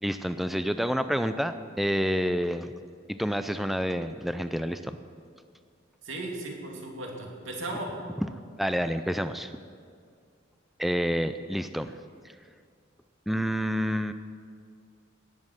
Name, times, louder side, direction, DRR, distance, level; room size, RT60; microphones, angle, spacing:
voice 1, 0.0-2.7 3.1-5.0 8.6-9.5 10.8-11.9 13.3-14.1, equal, ahead, 10 dB, 0.3 m, -28 dB
voice 2, 6.0-8.1, right 1 dB, 90° right, 0 dB, 2.6 m, -36 dB
18.0 x 7.4 x 6.4 m, 2.2 s
head